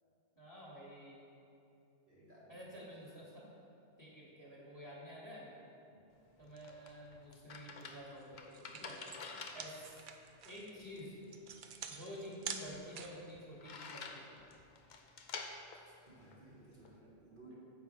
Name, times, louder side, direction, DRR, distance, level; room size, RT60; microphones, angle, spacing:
voice 1, 0.3-1.2 2.5-3.4 4.0-5.5 6.4-8.3 8.5-9.0 9.5-10.0 10.4-11.1 11.9-14.3, equal, 15° left, -6 dB, 1.8 m, -50 dB
voice 2, 2.1-2.6 15.8-17.6, right 2 dB, 40° right, -8 dB, 1.3 m, -58 dB
sound 1, 6.1-17.0, left 4 dB, 60° left, 0.5 m, -51 dB
sound 2, 8.1-8.2 8.5-13.3, right 7 dB, 70° right, 0.4 m, -47 dB
9.4 x 7.2 x 3.2 m, 2.7 s
omnidirectional pair, 1.4 m